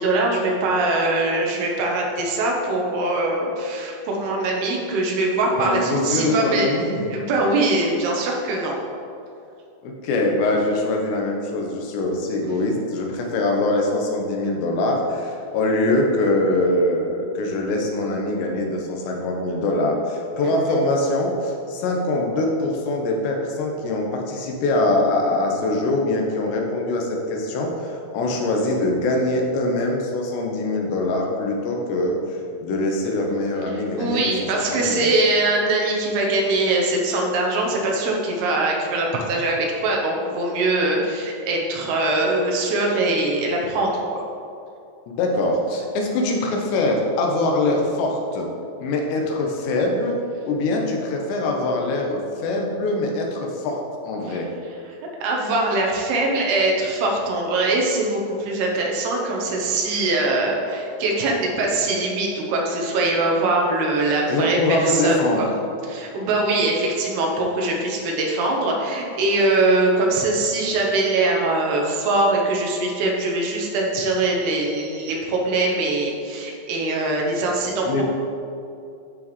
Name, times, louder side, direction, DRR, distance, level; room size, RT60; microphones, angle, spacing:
voice 1, 0.0-8.8 20.4-20.8 33.7-44.2 54.3-54.4 55.2-65.5 65.8-78.0, right 2 dB, 75° right, -1 dB, 2.7 m, -22 dB
voice 2, 5.6-7.1 9.8-34.2 34.5-35.1 45.2-48.5 48.8-50.2 50.4-54.5 64.3-65.5 77.9-78.0, left 2 dB, 80° left, 0 dB, 3.0 m, -23 dB
11.5 x 4.4 x 3.1 m, 2.5 s
omnidirectional pair, 5.1 m